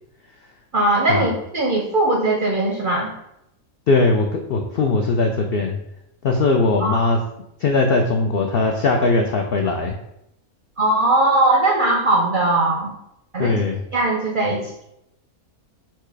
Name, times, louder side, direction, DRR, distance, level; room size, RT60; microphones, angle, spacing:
voice 1, 0.7-3.1 6.8-7.0 10.8-12.9 13.3-13.6 13.9-14.8, right 2 dB, 55° right, 0 dB, 0.5 m, -19 dB
voice 2, 3.9-5.8 6.2-7.2 7.6-10.0 13.4-13.8, left 3 dB, 80° left, 3 dB, 0.5 m, -19 dB
4.4 x 2.4 x 4.6 m, 0.81 s
omnidirectional pair, 1.5 m